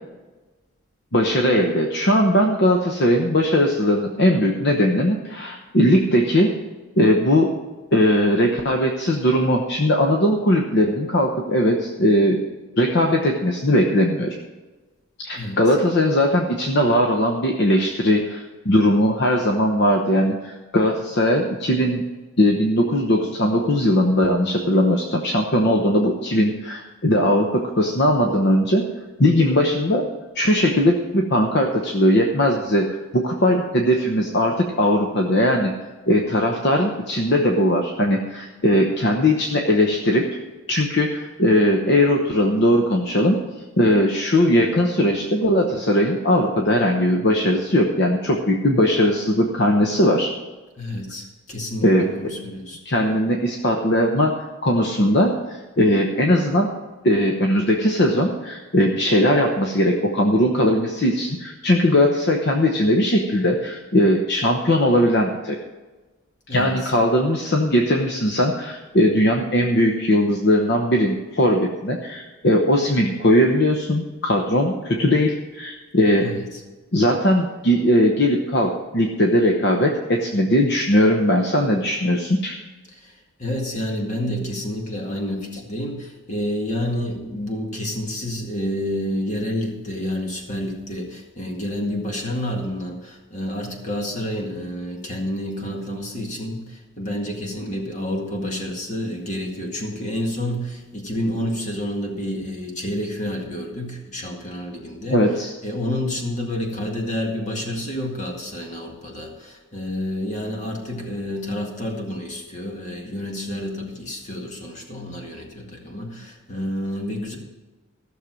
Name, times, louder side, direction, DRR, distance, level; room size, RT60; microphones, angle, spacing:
voice 1, 1.1-6.6 7.0-7.5 7.9-12.4 12.8-14.3 15.2-22.0 22.4-28.8 29.2-30.0 30.3-35.7 36.1-40.3 40.7-43.4 43.8-50.3 51.8-52.1 52.8-56.7 57.0-65.6 66.5-76.3 76.9-82.6 105.1-105.5, left 1 dB, 50° left, 2 dB, 1.0 m, -19 dB
voice 2, 50.8-52.8 66.5-66.9 76.2-76.6 83.0-83.1 83.4-105.2 105.6-117.4, left 1 dB, 35° left, 1 dB, 2.0 m, -29 dB
15.0 x 6.7 x 6.2 m, 1.2 s
head